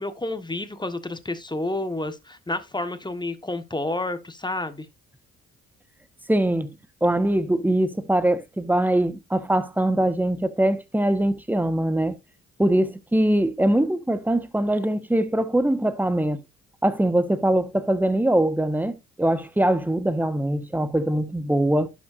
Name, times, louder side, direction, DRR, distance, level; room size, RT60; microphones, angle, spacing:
voice 1, 0.0-4.9, left 2 dB, 15° left, 1.4 m, -30 dB
voice 2, 6.3-6.7 7.0-12.1 12.6-16.4 16.8-21.9, right 1 dB, 5° right, 1.3 m, -22 dB
11.5 x 7.2 x 2.6 m
supercardioid pair, 60°, 32 cm